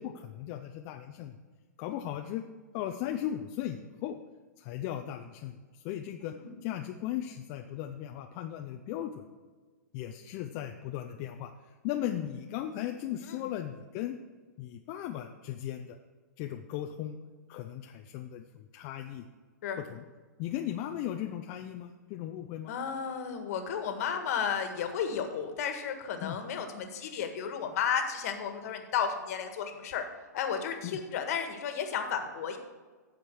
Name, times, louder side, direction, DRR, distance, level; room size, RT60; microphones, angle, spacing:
voice 1, 0.0-1.4 1.8-2.4 2.7-4.2 4.6-6.3 6.6-9.2 9.9-11.5 11.8-14.2 14.6-16.0 16.4-17.2 17.5-19.3 19.8-20.0 20.4-22.7 26.2-26.4 30.8-31.0, left 11 dB, 40° left, 4 dB, 0.6 m, -37 dB
voice 2, 22.7-30.0 30.3-32.6, left 7 dB, 55° left, 6 dB, 1.7 m, -33 dB
15.0 x 5.2 x 4.7 m, 1.4 s
hypercardioid pair, 130°, 10 cm